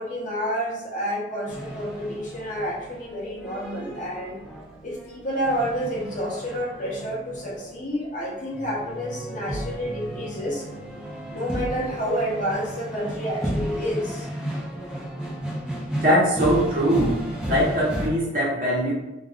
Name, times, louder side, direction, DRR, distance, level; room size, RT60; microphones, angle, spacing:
voice 1, 0.0-4.4 4.8-10.6 11.3-14.3, equal, 45° left, -4 dB, 0.7 m, -29 dB
sound 1, 1.5-18.1, equal, 5° right, 0.5 m, -34 dB
voice 2, 16.0-17.2 17.4-18.9, equal, 50° right, -6 dB, 0.9 m, -21 dB
2.4 x 2.2 x 3.3 m, 0.95 s
head